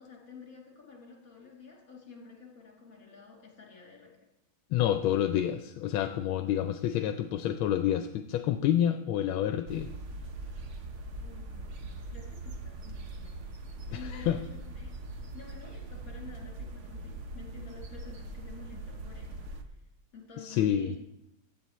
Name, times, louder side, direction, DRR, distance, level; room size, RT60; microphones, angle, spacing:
voice 1, 0.0-4.3 11.2-13.3 13.9-15.0 15.3-19.4 19.7-19.8 20.1-21.0, left 5 dB, 40° left, -3 dB, 3.1 m, -50 dB
voice 2, 4.7-9.9 13.9-14.0 14.3-14.4 20.4-20.9, left 10 dB, 80° left, 8 dB, 1.4 m, -28 dB
sound 1, 9.7-19.6, right 2 dB, 50° right, 0.9 m, -41 dB
15.5 x 9.5 x 3.0 m, 0.84 s
omnidirectional pair, 2.2 m